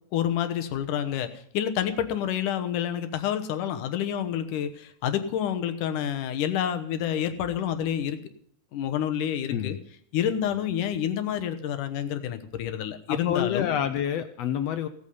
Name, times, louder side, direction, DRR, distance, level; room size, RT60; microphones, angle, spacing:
voice 1, 0.1-8.2 8.7-9.8 10.1-13.7, left 9 dB, 90° left, 8 dB, 2.7 m, -28 dB
voice 2, 13.1-14.9, left 9 dB, 75° left, 10 dB, 1.6 m, -28 dB
17.5 x 8.6 x 5.4 m, 0.66 s
omnidirectional pair, 3.6 m